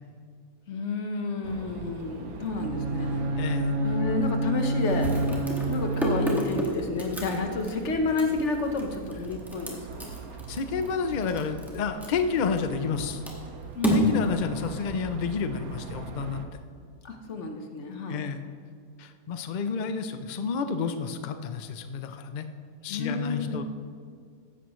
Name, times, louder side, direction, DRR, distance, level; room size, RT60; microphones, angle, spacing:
voice 1, 0.7-3.3 3.8-5.1 5.7-10.2 13.7-14.0 17.0-18.2 22.9-23.6, left 3 dB, 55° left, 5 dB, 1.3 m, -30 dB
sound 1, 1.4-16.4, right 6 dB, 75° right, 1.3 m, -42 dB
Bowed string instrument, 2.6-6.8, right 2 dB, 55° right, 1.6 m, -28 dB
voice 2, 3.4-3.8 10.5-13.2 13.9-16.4 18.1-18.4 19.0-22.5 22.8-23.6, left 6 dB, 75° left, 9 dB, 0.4 m, -30 dB
sound 2, 3.4-3.6 3.9-4.0 4.8-13.0 13.2-15.4, equal, ahead, 1.6 m, -30 dB
15.0 x 11.0 x 3.1 m, 2.1 s
omnidirectional pair, 1.6 m